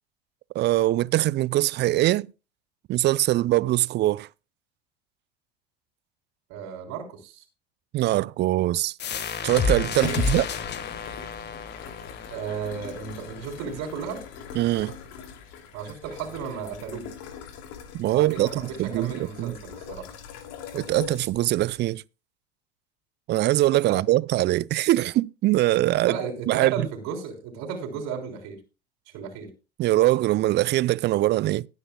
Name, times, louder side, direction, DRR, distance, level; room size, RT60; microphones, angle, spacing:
voice 1, 0.5-2.3 2.9-4.3 7.9-8.9 9.4-10.5 14.5-14.9 17.9-19.5 20.7-22.0 23.3-26.2 26.5-26.9 29.8-31.7, right 16 dB, 35° right, 0.5 m, -22 dB
voice 2, 6.5-7.4 10.0-10.3 12.3-14.2 15.7-17.1 18.1-20.1 23.8-24.0 26.0-28.6 29.1-29.5, right 6 dB, 55° right, 3.6 m, -34 dB
sound 1, 9.0-14.4, left 5 dB, 35° left, 1.5 m, -31 dB
sound 2, 9.5-21.9, left 7 dB, 55° left, 2.7 m, -41 dB
19.0 x 9.8 x 2.3 m
hypercardioid pair, 80°, 31 cm